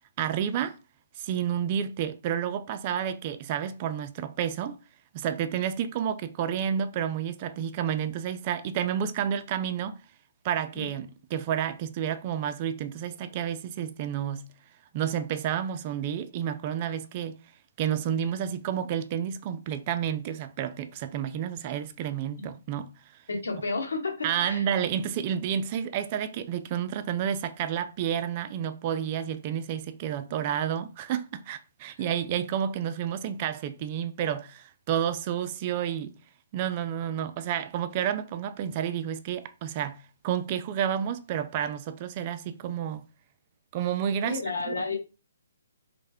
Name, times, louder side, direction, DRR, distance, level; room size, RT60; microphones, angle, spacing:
voice 1, 0.2-0.8 1.2-4.8 5.1-10.0 10.4-14.4 14.9-17.4 17.8-22.9 24.2-36.1 36.5-43.0 43.7-44.4 44.7-44.8, right 9 dB, 30° right, 0.3 m, -30 dB
voice 2, 23.3-24.7 44.2-45.0, left 3 dB, 85° left, 1.2 m, -31 dB
3.2 x 2.1 x 3.4 m
hypercardioid pair, 150°, 0 cm